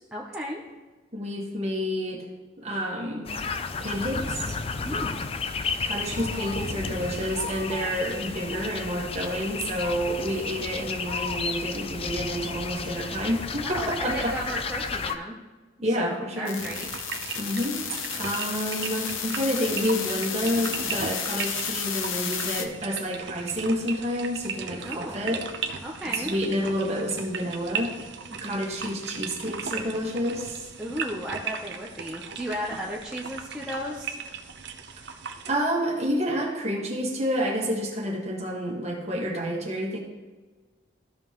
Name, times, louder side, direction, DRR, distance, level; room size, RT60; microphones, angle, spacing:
voice 1, 0.1-0.6 4.9-5.3 13.6-15.4 16.0-16.9 24.8-25.3 25.8-26.3 28.3-28.6 30.8-34.2, equal, 5° right, -4 dB, 0.7 m, -34 dB
voice 2, 1.1-2.3 2.6-3.3 3.8-4.6 5.8-14.4 15.8-16.6 17.4-25.5 26.2-27.9 28.4-30.7 35.4-40.0, equal, 30° right, -2 dB, 1.7 m, -29 dB
sound 1, 3.3-15.2, left 4 dB, 30° left, 0.3 m, -32 dB
sound 2, 16.4-22.6, left 7 dB, 75° left, 0.8 m, -32 dB
sound 3, 16.6-35.6, right 6 dB, 55° right, 0.7 m, -37 dB
14.5 x 5.4 x 3.0 m, 1.3 s
head